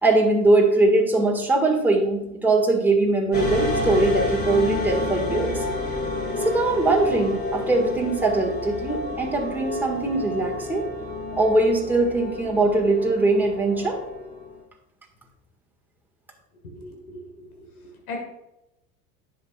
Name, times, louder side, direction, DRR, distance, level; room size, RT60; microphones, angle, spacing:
voice 1, 0.0-5.6 6.4-10.8 11.4-14.0, right 2 dB, 5° right, -1 dB, 1.8 m, -21 dB
sound 1, 3.3-14.6, left 2 dB, 20° left, 2.6 m, -29 dB
voice 2, 16.6-18.2, left 2 dB, 80° left, 1 dB, 1.9 m, -39 dB
10.0 x 6.6 x 2.4 m, 0.88 s
hypercardioid pair, 75°, 43 cm